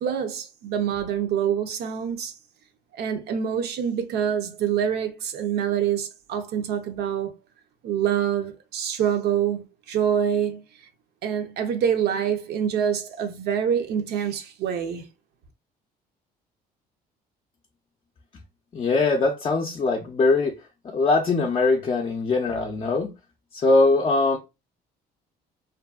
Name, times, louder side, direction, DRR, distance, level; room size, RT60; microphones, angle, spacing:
voice 1, 0.0-2.3 3.0-7.3 7.8-10.6 11.2-15.0, right 8 dB, 70° right, 0.6 m, -26 dB
voice 2, 18.7-20.6 20.8-23.1 23.5-24.4, left 3 dB, 30° left, 0.5 m, -21 dB
2.5 x 2.5 x 2.3 m
cardioid pair, 110°, 17 cm